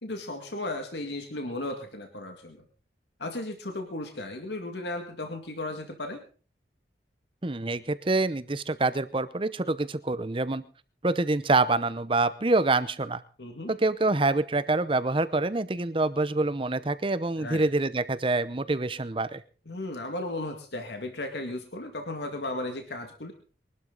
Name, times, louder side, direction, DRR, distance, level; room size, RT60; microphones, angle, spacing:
voice 1, 0.0-2.6 3.2-6.2 13.4-13.7 17.4-17.6 19.7-23.3, left 2 dB, 75° left, 4 dB, 2.1 m, -35 dB
voice 2, 7.4-10.6 11.0-13.2 13.7-19.4, right 2 dB, 30° right, 15 dB, 0.8 m, -26 dB
22.5 x 12.0 x 4.0 m, 0.39 s
head